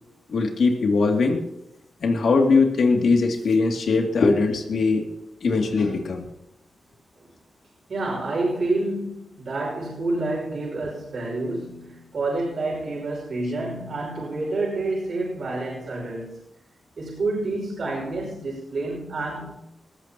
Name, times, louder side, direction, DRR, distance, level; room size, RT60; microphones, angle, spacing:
voice 1, 0.3-1.4 2.0-5.0 5.4-6.2, left 4 dB, 75° left, 2 dB, 2.5 m, -20 dB
voice 2, 7.9-16.4 17.0-19.5, right 2 dB, 60° right, -4 dB, 5.6 m, -28 dB
19.0 x 15.0 x 3.0 m, 0.86 s
wide cardioid pair, 105°, 0 cm